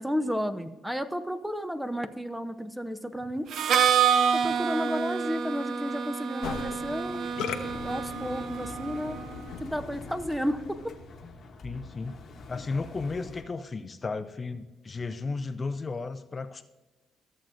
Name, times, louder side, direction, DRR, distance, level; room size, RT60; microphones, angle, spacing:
voice 1, 0.0-3.5 4.3-7.3 7.7-9.2 9.6-10.9, equal, 5° right, 10 dB, 0.6 m, -32 dB
Harmonica, 3.5-9.2, right 7 dB, 70° right, 0.5 m, -27 dB
Musical instrument, 6.4-10.7, left 7 dB, 90° left, 0.8 m, -40 dB
Engine, 7.6-13.4, left 3 dB, 55° left, 1.1 m, -44 dB
voice 2, 11.6-12.2 12.5-16.6, left 4 dB, 35° left, 10 dB, 0.4 m, -34 dB
14.0 x 7.5 x 2.6 m, 1.2 s
cardioid pair, 90°, 0 cm